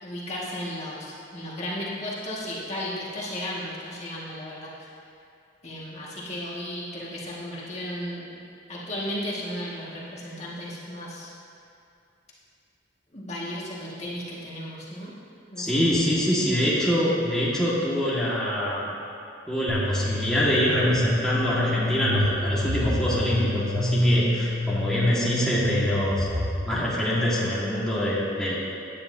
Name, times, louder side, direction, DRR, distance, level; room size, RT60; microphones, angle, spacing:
voice 1, 0.0-4.9 5.6-8.4 8.7-11.3 13.1-15.2 15.5-15.9, left 1 dB, 35° left, -6 dB, 1.9 m, -35 dB
voice 2, 15.6-18.9 19.5-26.3 26.7-28.5, equal, 5° left, -9 dB, 1.8 m, -25 dB
sound 1, 19.7-26.5, left 1 dB, 65° right, 2.5 m, -27 dB
17.0 x 9.9 x 2.8 m, 2.5 s
head